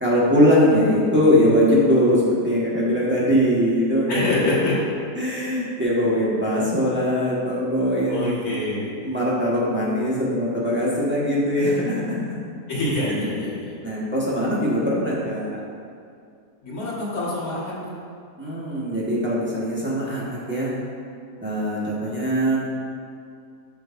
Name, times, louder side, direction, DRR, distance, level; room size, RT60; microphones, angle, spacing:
voice 1, 0.0-4.3 5.1-8.3 9.0-12.4 13.8-15.6 18.4-20.7 21.4-22.6, equal, 10° right, -8 dB, 1.4 m, -21 dB
voice 2, 4.1-4.8 8.1-8.9 12.7-13.9 16.6-17.9, left 2 dB, 75° left, -8 dB, 2.2 m, -26 dB
9.0 x 6.2 x 2.6 m, 2.3 s
omnidirectional pair, 1.5 m